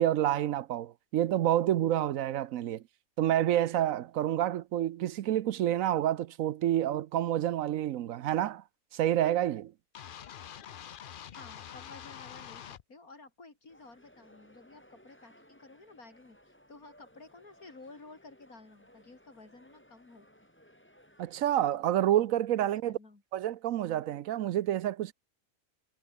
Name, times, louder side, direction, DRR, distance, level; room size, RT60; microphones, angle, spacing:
voice 1, 0.0-2.8 3.2-8.6 8.9-9.7 21.2-22.9 23.3-25.1, right 12 dB, 70° right, 1.0 m, -28 dB
sound 1, 10.0-12.8, left 9 dB, 50° left, 0.6 m, -46 dB
voice 2, 11.3-20.3 22.6-23.2, left 3 dB, 80° left, 4.4 m, -53 dB
sound 2, 13.7-21.7, equal, 10° left, 5.9 m, -61 dB
omnidirectional pair, 1.5 m